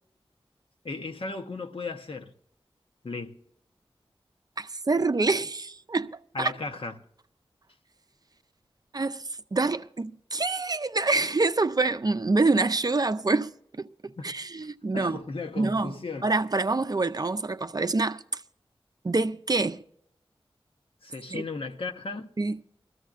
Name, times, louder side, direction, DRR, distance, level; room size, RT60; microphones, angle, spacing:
voice 1, 0.8-2.3 3.0-3.4 6.3-6.9 14.2-14.4 14.9-16.3 21.0-22.3, left 3 dB, 70° left, 0.9 m, -35 dB
voice 2, 4.6-6.5 8.9-13.5 13.8-15.2 15.6-15.9 16.2-18.4 19.0-19.8 21.3-21.4 22.4-22.6, right 3 dB, 40° right, 0.5 m, -26 dB
22.0 x 14.5 x 2.5 m
wide cardioid pair, 45°, 10 cm